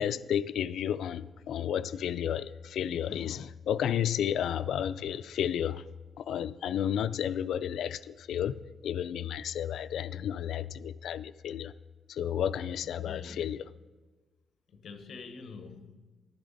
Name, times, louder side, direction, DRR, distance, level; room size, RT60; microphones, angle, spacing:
voice 1, 0.0-5.8 6.2-11.7 12.1-13.6, left 9 dB, 70° left, 0.3 m, -32 dB
voice 2, 12.8-13.7 14.7-16.0, left 4 dB, 55° left, 0.9 m, -46 dB
11.0 x 10.5 x 4.0 m
wide cardioid pair, 175°, 0 cm